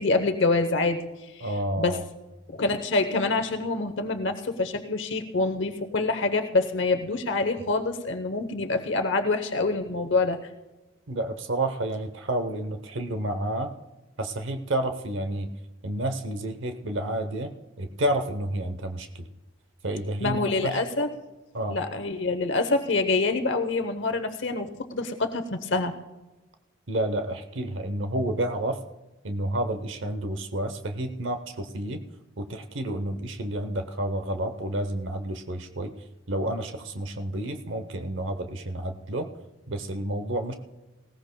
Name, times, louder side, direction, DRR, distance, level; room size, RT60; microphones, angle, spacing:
voice 1, 0.0-2.0 2.5-10.4 20.2-21.2 21.7-25.9, left 3 dB, 65° left, 7 dB, 0.9 m, -26 dB
voice 2, 1.4-2.0 11.1-13.7 14.2-15.5 15.8-19.3 19.8-20.8 21.5-21.8 26.9-28.8 29.2-32.0 32.4-35.9 36.3-39.3 39.7-40.5, right 1 dB, 70° right, 8 dB, 0.8 m, -30 dB
19.5 x 17.5 x 2.2 m, 1.1 s
head